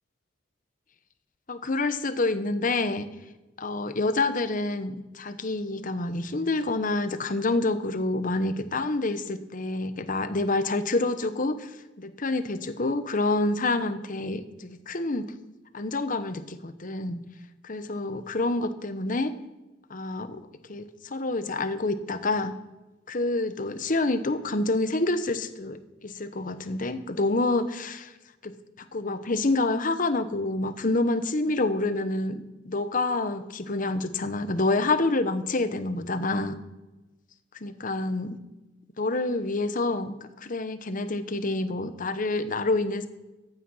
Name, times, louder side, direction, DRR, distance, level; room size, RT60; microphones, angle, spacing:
voice 1, 1.5-3.0 3.6-11.7 12.0-15.3 15.7-17.2 17.6-19.3 19.9-22.5 23.1-28.1 28.4-36.6 37.6-38.4 39.0-43.1, left 2 dB, 45° left, 11 dB, 0.9 m, -27 dB
15.0 x 9.2 x 5.6 m, 1.1 s
head